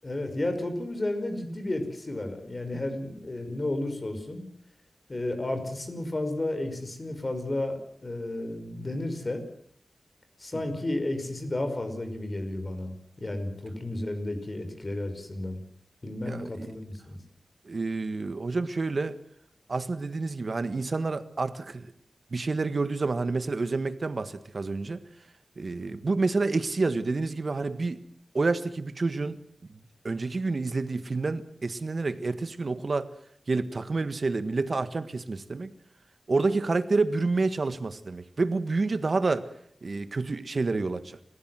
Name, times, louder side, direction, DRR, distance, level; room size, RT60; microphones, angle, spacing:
voice 1, 0.0-4.4 5.1-9.4 10.4-12.9 13.2-15.6 16.0-17.2, left 1 dB, 35° left, 7 dB, 5.6 m, -32 dB
voice 2, 16.3-16.7 17.6-19.2 19.7-21.9 22.3-25.0 25.6-28.0 28.3-29.4 29.7-33.1 33.5-35.7 36.3-39.5 39.8-41.2, right 3 dB, 55° right, 12 dB, 1.6 m, -29 dB
29.5 x 15.5 x 7.8 m, 0.67 s
wide cardioid pair, 75°, 0 cm